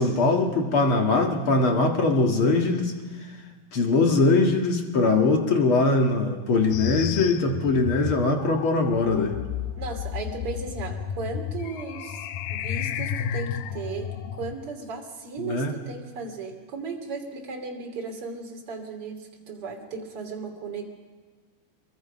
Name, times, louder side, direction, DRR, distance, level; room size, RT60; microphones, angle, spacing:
voice 1, 0.0-2.9 3.7-9.4 15.4-15.7, left 3 dB, 50° left, 2 dB, 1.6 m, -22 dB
sound 1, 6.7-14.5, left 9 dB, 80° left, 2.1 m, -32 dB
voice 2, 9.7-20.8, right 4 dB, 35° right, 2 dB, 3.3 m, -36 dB
26.5 x 22.5 x 5.3 m, 1.4 s
omnidirectional pair, 4.9 m